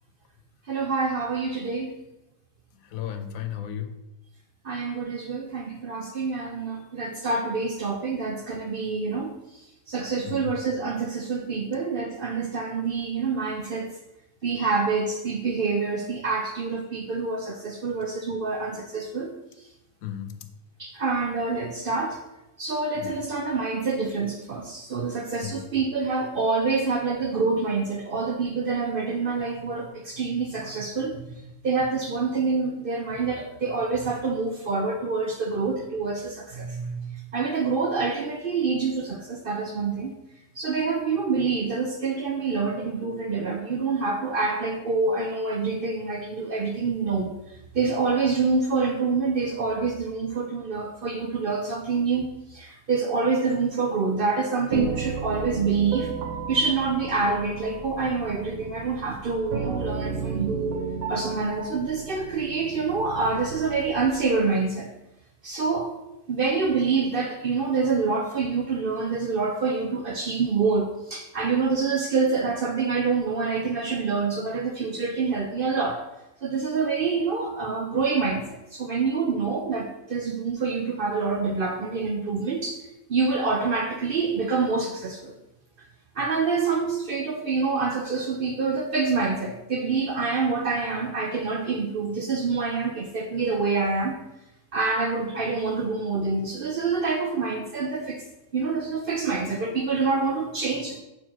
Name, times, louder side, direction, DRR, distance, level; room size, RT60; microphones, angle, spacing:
voice 1, 0.7-2.0 4.6-13.9 14.4-19.4 20.8-22.2 22.6-40.1 40.6-47.3 47.7-52.2 52.5-56.1 56.5-60.7 61.1-64.9 65.4-65.9 66.3-76.0 76.4-82.8 83.1-85.3 86.2-94.2 94.7-98.2 98.5-101.0, right 4 dB, 55° right, 3 dB, 0.7 m, -26 dB
voice 2, 2.8-4.0 10.2-10.5 20.0-20.5 22.9-23.1 25.4-25.6, left 10 dB, 75° left, 8 dB, 1.1 m, -34 dB
sound 1, 54.7-64.3, right 5 dB, 85° right, 1.2 m, -33 dB
4.5 x 4.5 x 5.8 m, 0.92 s
omnidirectional pair, 1.5 m